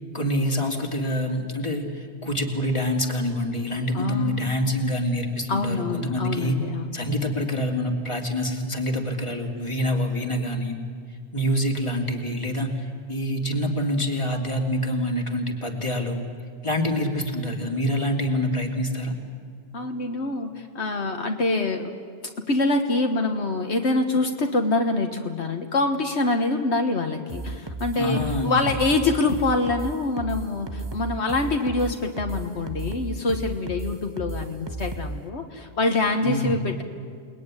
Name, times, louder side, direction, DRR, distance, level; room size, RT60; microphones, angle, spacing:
voice 1, 0.1-6.6 6.9-10.8 11.3-16.2 16.6-19.1 27.9-28.7 36.2-36.6, equal, 25° left, 2 dB, 2.7 m, -26 dB
voice 2, 3.9-4.4 5.5-7.0 19.7-21.9 22.2-36.8, left 2 dB, 75° left, 4 dB, 1.7 m, -25 dB
sound 1, 27.3-35.2, right 2 dB, 25° right, 1.3 m, -34 dB
28.5 x 20.5 x 9.8 m, 2.1 s
omnidirectional pair, 1.2 m